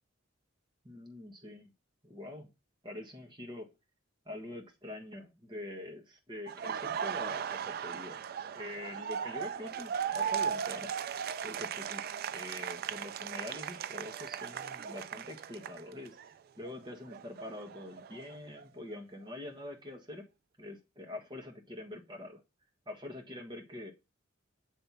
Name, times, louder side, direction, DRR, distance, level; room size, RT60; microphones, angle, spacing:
voice 1, 0.8-1.7 2.0-2.5 2.8-3.7 4.2-8.2 8.5-10.9 11.4-16.2 16.6-20.3 20.6-22.4 22.9-23.9, left 1 dB, 25° right, 2 dB, 1.4 m, -45 dB
Laughter, 6.5-16.3 16.6-18.6, right 8 dB, 50° right, 0.3 m, -37 dB
7.6 x 3.3 x 5.6 m, 0.25 s
head